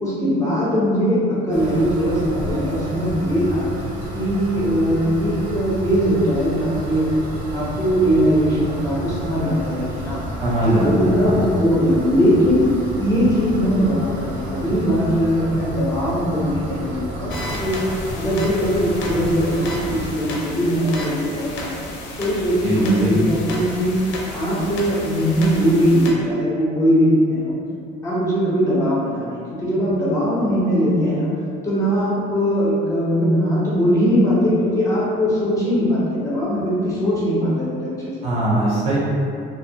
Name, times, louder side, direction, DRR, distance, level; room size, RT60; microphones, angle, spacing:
voice 1, 0.0-3.7 4.1-7.1 7.5-10.2 10.6-12.7 13.0-17.9 18.2-21.7 22.2-24.0 24.3-27.6 28.0-31.3 31.6-38.1 38.9-39.0, equal, 15° left, -8 dB, 0.4 m, -20 dB
sound 1, 1.5-20.1, right 1 dB, 75° right, 0.6 m, -31 dB
voice 2, 10.4-11.5 22.6-23.2 38.2-39.0, right 1 dB, 35° right, -6 dB, 0.5 m, -20 dB
sound 2, 17.3-26.1, left 1 dB, 80° left, 0.5 m, -32 dB
2.5 x 2.0 x 2.6 m, 2.4 s
cardioid pair, 175°, 19 cm